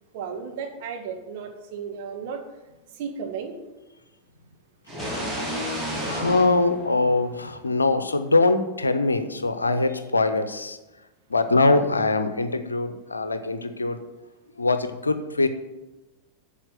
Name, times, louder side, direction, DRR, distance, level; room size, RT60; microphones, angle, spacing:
voice 1, 0.1-2.4 2.9-3.5, right 6 dB, 50° right, 2 dB, 2.0 m, -34 dB
sound 1, 4.9-7.7, equal, 15° right, 3.8 m, -31 dB
voice 2, 6.1-10.8 11.3-14.0 14.6-15.5, left 3 dB, 80° left, 10 dB, 0.8 m, -23 dB
8.9 x 7.1 x 7.4 m, 1.1 s
figure-of-eight pair, 90°, 0 cm